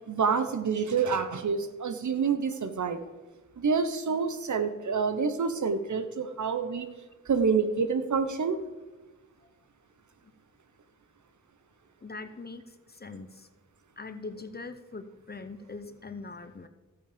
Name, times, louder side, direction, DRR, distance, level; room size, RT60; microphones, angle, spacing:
voice 1, 0.1-3.0 3.6-6.9 7.3-8.6, right 5 dB, 60° right, 9 dB, 1.0 m, -27 dB
voice 2, 12.0-13.5 14.0-16.7, left 3 dB, 30° left, 10 dB, 0.8 m, -42 dB
13.5 x 8.6 x 5.1 m, 1.2 s
wide cardioid pair, 90°, 33 cm